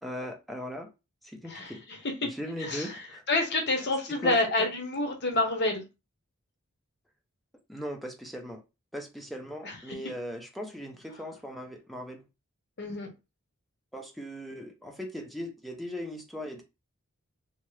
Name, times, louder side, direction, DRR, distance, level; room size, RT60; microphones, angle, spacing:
voice 1, 0.0-0.9 1.2-3.2 4.1-4.4 7.7-8.6 8.9-12.2 13.9-16.6, equal, ahead, 0.5 m, -39 dB
voice 2, 1.5-2.1 2.6-5.8 9.6-10.0 12.8-13.1, left 2 dB, 55° left, 0.8 m, -29 dB
2.8 x 2.3 x 3.1 m
head